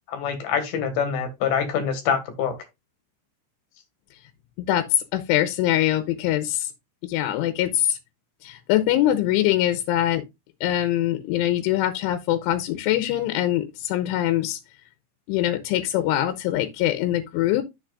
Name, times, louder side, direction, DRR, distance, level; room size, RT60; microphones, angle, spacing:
voice 1, 0.1-2.5, left 7 dB, 60° left, 3.0 m, -25 dB
voice 2, 4.6-6.7 7.0-8.0 8.4-10.2 10.6-14.6 15.3-17.6, left 13 dB, 85° left, 3.2 m, -23 dB
11.5 x 6.9 x 2.5 m
omnidirectional pair, 5.6 m